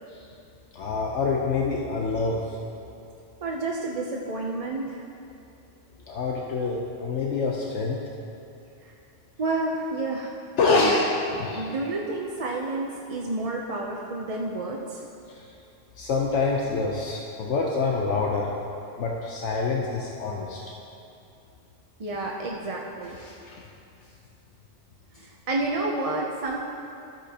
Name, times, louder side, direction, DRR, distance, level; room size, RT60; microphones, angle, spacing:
voice 1, 0.7-2.6 6.1-8.0 10.6-11.0 11.3-11.7 15.3-15.5 16.0-18.5 19.0-20.6 23.2-23.6, left 4 dB, 75° left, -2 dB, 1.1 m, -26 dB
voice 2, 3.4-5.0 9.4-10.3 10.7-11.0 11.5-15.0 22.0-23.2 25.2-26.6, right 2 dB, 40° right, -2 dB, 0.6 m, -30 dB
13.0 x 8.2 x 2.9 m, 2.7 s
omnidirectional pair, 1.2 m